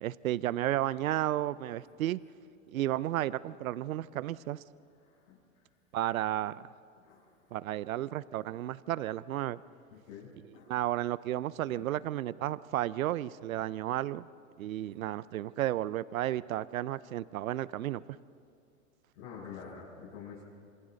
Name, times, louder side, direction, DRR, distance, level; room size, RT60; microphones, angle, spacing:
voice 1, 0.0-2.2 2.7-4.6 5.9-6.7 7.5-9.6 10.7-14.3 14.6-18.0, right 13 dB, 85° right, 19 dB, 0.6 m, -33 dB
voice 2, 5.0-5.4 7.0-7.3 7.9-8.0 9.9-10.7 11.7-11.8 19.2-20.4, left 6 dB, 70° left, -9 dB, 7.0 m, -47 dB
27.0 x 26.5 x 4.0 m, 2.3 s
hypercardioid pair, 120°, 40 cm